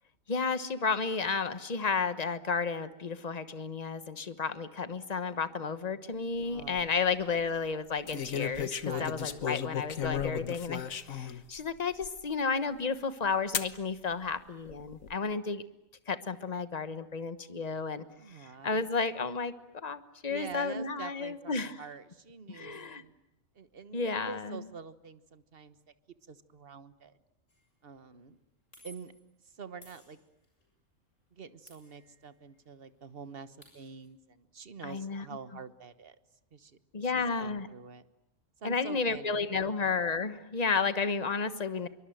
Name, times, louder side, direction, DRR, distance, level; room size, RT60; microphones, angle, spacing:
voice 1, 0.3-10.8 11.1-15.6 16.1-21.8 22.5-23.0 23.9-24.6 34.8-35.2 36.9-37.7 38.6-41.9, left 5 dB, 30° left, 12 dB, 1.2 m, -32 dB
sound 1, 6.4-6.8 8.1-11.4 12.0-12.1 13.5-13.8 14.6-15.1, left 8 dB, 85° left, 1.6 m, -35 dB
voice 2, 6.4-7.6 8.9-9.4 18.2-18.9 20.3-23.1 23.5-25.9 26.3-27.2 27.8-28.4 28.8-29.1 29.4-30.2 31.3-36.1 36.5-38.0 38.6-39.7, right 5 dB, 45° right, 13 dB, 1.4 m, -47 dB
sound 2, 27.5-27.7 28.7-29.3 29.8-30.7 31.7-32.5 32.8-32.9 33.2-34.1, left 1 dB, 65° left, 7.6 m, -57 dB
26.0 x 23.5 x 9.2 m, 0.92 s
omnidirectional pair, 1.4 m